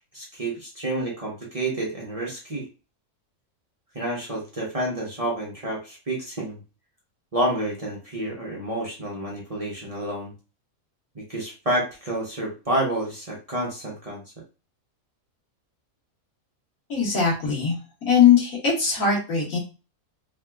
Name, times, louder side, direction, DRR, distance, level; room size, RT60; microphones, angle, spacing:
voice 1, 0.1-2.7 3.9-6.6 7.3-10.3 11.1-14.2, right 1 dB, 30° right, -4 dB, 0.8 m, -29 dB
voice 2, 16.9-19.6, left 7 dB, 75° left, -3 dB, 1.8 m, -20 dB
3.4 x 2.7 x 2.3 m, 0.31 s
omnidirectional pair, 1.4 m